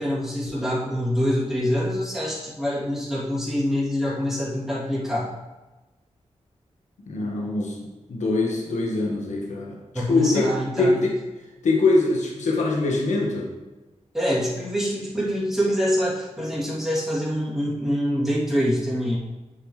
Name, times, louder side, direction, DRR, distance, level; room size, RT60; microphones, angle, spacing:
voice 1, 0.0-5.3 9.9-11.0 14.1-19.2, equal, 5° right, -9 dB, 2.9 m, -25 dB
voice 2, 7.1-9.8 10.1-10.5 10.8-11.1 11.6-13.5, left 3 dB, 90° left, -1 dB, 1.5 m, -23 dB
9.7 x 7.5 x 3.3 m, 1.1 s
wide cardioid pair, 165°, 12 cm